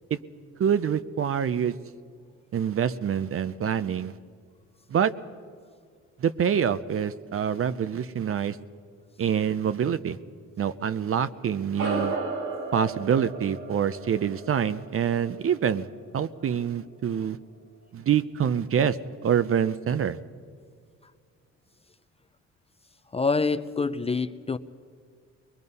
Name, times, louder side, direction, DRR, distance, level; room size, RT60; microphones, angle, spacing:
voice 1, 0.6-1.7 2.5-4.2 4.9-5.1 6.2-8.6 9.2-10.2 10.6-12.2 12.7-15.9 16.1-17.4 17.9-20.2, right 8 dB, 45° right, 0.7 m, -26 dB
sound 1, 11.8-16.5, right 3 dB, 85° right, 3.8 m, -34 dB
voice 2, 23.1-24.6, left 4 dB, 20° left, 0.5 m, -26 dB
23.0 x 21.5 x 5.5 m
cardioid pair, 90°, 30 cm